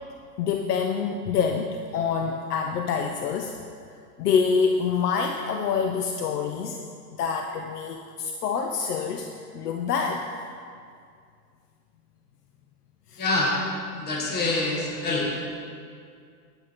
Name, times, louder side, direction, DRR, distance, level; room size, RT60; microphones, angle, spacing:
voice 1, 0.4-3.5 4.2-6.8 7.2-9.3 9.5-10.3 13.1-13.2, left 6 dB, 70° left, 4 dB, 0.9 m, -26 dB
voice 2, 13.2-13.6 14.0-15.3, left 2 dB, 20° left, -2 dB, 1.5 m, -25 dB
9.8 x 9.7 x 4.2 m, 2.2 s
hypercardioid pair, 140°, 48 cm